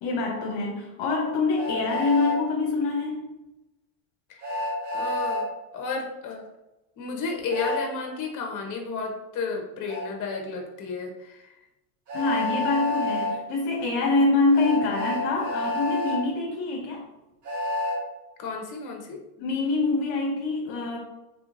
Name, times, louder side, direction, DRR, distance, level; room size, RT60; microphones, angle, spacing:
voice 1, 0.0-3.2 12.1-17.0 19.4-21.0, left 3 dB, 65° left, 0 dB, 0.9 m, -25 dB
Train, 1.6-2.4 4.4-5.4 7.5-7.8 9.9-10.0 12.1-13.3 14.5-16.2 17.4-18.0, left 2 dB, 40° right, 1.5 m, -29 dB
voice 2, 4.3-5.5 5.7-6.5 7.0-11.5 18.4-19.2, left 4 dB, 40° left, 1 dB, 1.0 m, -32 dB
3.6 x 3.1 x 2.5 m, 0.98 s
supercardioid pair, 105°, 45 cm